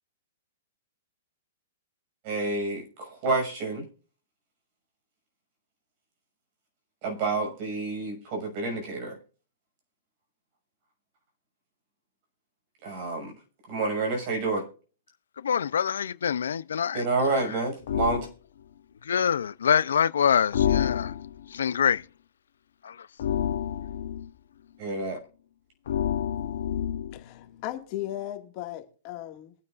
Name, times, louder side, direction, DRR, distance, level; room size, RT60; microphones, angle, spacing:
voice 1, 2.2-3.8 7.0-9.2 12.8-13.3 13.7-14.6 16.9-18.3 24.8-25.2, right 3 dB, 40° right, 6.2 m, -29 dB
voice 2, 15.4-17.6 19.0-21.1 21.5-22.0 22.8-23.1, left 8 dB, 85° left, 0.6 m, -26 dB
sound 1, 17.9-18.3 20.5-21.5 23.2-24.3 25.9-27.2, left 10 dB, 70° left, 1.0 m, -28 dB
voice 3, 27.1-29.5, left 13 dB, 35° left, 2.1 m, -36 dB
23.0 x 9.5 x 2.5 m
hypercardioid pair, 155°, 0 cm